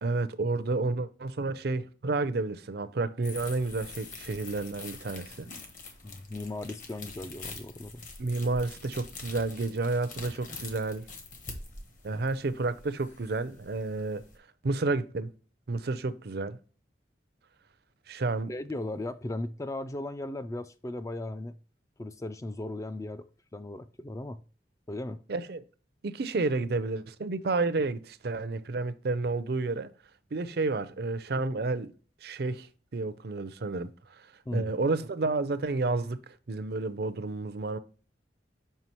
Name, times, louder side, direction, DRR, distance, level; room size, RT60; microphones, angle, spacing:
voice 1, 0.0-5.5 8.2-11.1 12.0-14.2 14.6-15.3 15.7-16.6 18.1-18.5 25.3-25.6 26.0-29.9 30.3-31.9 32.2-32.7 32.9-33.9 34.5-36.2 36.5-37.8, right 3 dB, 55° right, 0.5 m, -30 dB
sound 1, 3.2-14.4, left 3 dB, 45° left, 1.2 m, -45 dB
voice 2, 6.0-8.0 12.1-12.2 18.5-21.5 22.0-23.3 23.5-24.4 24.9-25.2 34.5-34.7, left 2 dB, 15° left, 0.3 m, -37 dB
5.6 x 5.6 x 3.0 m
head